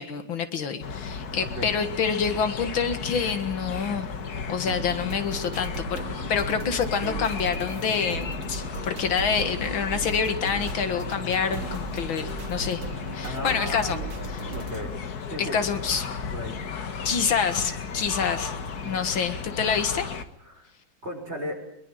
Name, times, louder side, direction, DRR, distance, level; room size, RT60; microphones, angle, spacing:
voice 1, 0.0-4.1 4.5-6.0 6.3-12.8 13.1-14.0 14.3-14.6 15.4-16.1 17.0-18.6 18.8-20.1, left 6 dB, 80° left, 9 dB, 2.5 m, -27 dB
sound 1, 0.8-20.2, left 5 dB, 50° left, 1.9 m, -35 dB
sound 2, 4.6-14.8, right 3 dB, 85° right, 2.8 m, -37 dB
voice 2, 13.2-14.0 14.6-15.0 15.3-16.6 18.8-19.1 20.4-20.7 21.0-21.6, equal, 30° right, 3 dB, 6.0 m, -36 dB
23.5 x 22.0 x 9.1 m, 0.75 s
omnidirectional pair, 2.2 m